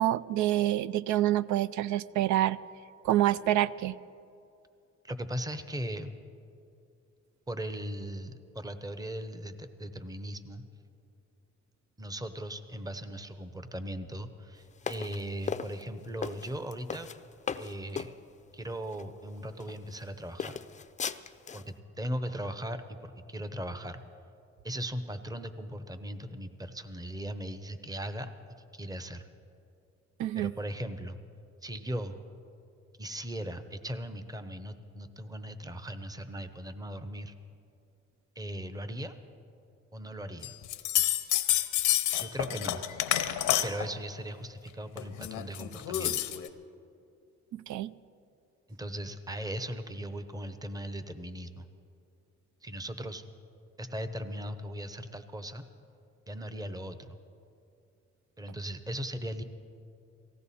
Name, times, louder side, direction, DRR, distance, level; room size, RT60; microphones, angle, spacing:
voice 1, 0.0-2.6 3.0-4.0 30.2-30.5 47.5-47.9, right 13 dB, 70° right, 18 dB, 0.4 m, -27 dB
voice 2, 5.0-6.1 7.5-10.6 12.0-17.1 17.6-18.1 18.5-20.6 21.5-24.0 24.6-28.3 28.7-29.3 30.3-31.2 31.6-32.2 33.0-37.3 38.4-39.2 39.9-40.6 42.2-42.8 43.6-46.3 48.7-51.7 52.6-53.2 53.8-55.6 56.3-57.2 58.4-59.4, equal, 10° right, 10 dB, 0.8 m, -38 dB
sound 1, 14.8-18.1 18.9-19.0 19.6-20.1 20.4-21.7, left 6 dB, 25° left, 0.5 m, -37 dB
sound 2, 40.4-43.9 45.0-46.5, left 12 dB, 90° left, 0.8 m, -29 dB
18.5 x 15.5 x 4.2 m, 2.5 s
cardioid pair, 90°, 30 cm